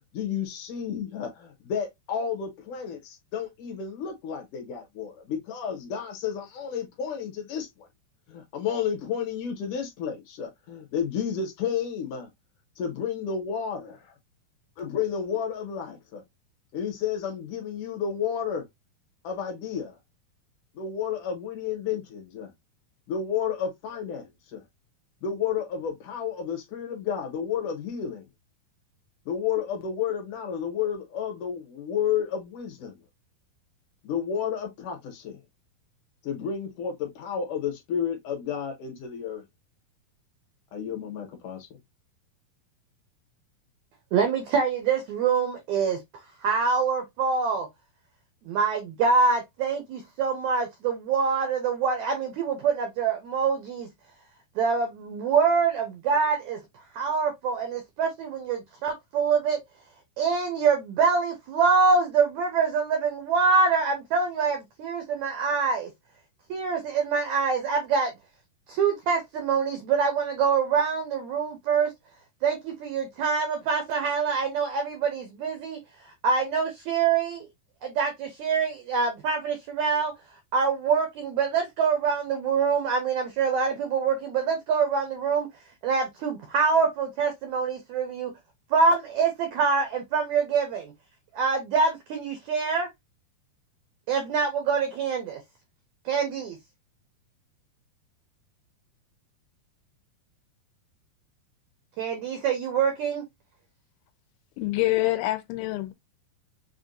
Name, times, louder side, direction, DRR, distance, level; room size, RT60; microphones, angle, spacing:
voice 1, 0.1-7.9 8.3-12.3 12.8-14.1 14.8-16.2 16.7-18.6 19.2-20.0 20.7-22.5 23.1-24.6 25.2-28.3 29.3-33.0 34.0-35.4 36.2-39.4 40.7-41.7, left 7 dB, 65° left, 2.3 m, -31 dB
voice 2, 44.1-46.0 46.4-47.7 48.4-53.9 54.5-56.6 56.9-59.6 60.2-65.9 66.5-68.1 68.7-71.9 72.4-75.8 76.1-77.5 77.8-80.1 80.5-85.5 85.8-88.3 88.7-90.9 91.3-92.9 94.1-95.4 96.0-96.6 102.0-103.2, right 5 dB, 90° right, 1.6 m, -25 dB
voice 3, 104.6-105.9, left 18 dB, 90° left, 2.5 m, -26 dB
6.3 x 2.4 x 2.5 m
omnidirectional pair, 4.4 m